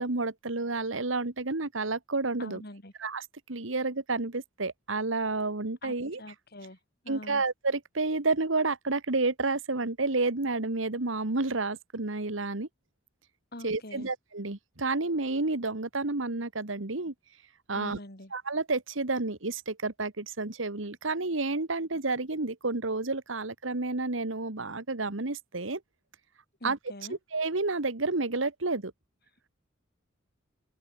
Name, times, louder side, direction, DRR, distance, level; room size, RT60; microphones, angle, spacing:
voice 1, 0.0-2.6 3.0-6.2 7.1-12.7 13.6-17.1 17.7-18.0 18.3-25.8 26.6-26.8 27.1-28.9, right 3 dB, 75° right, 1.7 m, -30 dB
voice 2, 2.4-2.9 5.8-6.8 7.0-7.4 13.5-14.1 17.7-18.3 26.6-27.2, left 1 dB, 55° left, 7.4 m, -44 dB
open air
head